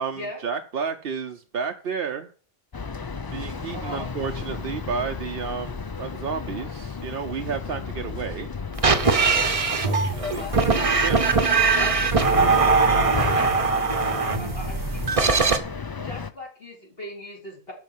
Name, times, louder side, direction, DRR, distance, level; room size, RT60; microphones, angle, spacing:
voice 1, 0.0-2.3 3.3-8.5 9.7-10.6 10.9-11.4 13.3-13.5, right 6 dB, 60° right, 4 dB, 0.9 m, -32 dB
sound 1, 2.7-16.3, left 4 dB, 35° left, 0.4 m, -33 dB
voice 2, 3.7-4.1 10.3-10.6 11.8-15.6 16.0-17.7, left 1 dB, 60° left, -1 dB, 3.9 m, -38 dB
sound 2, 8.7-15.6, right 4 dB, 35° right, 1.0 m, -21 dB
12.0 x 4.9 x 7.2 m, 0.41 s
omnidirectional pair, 1.1 m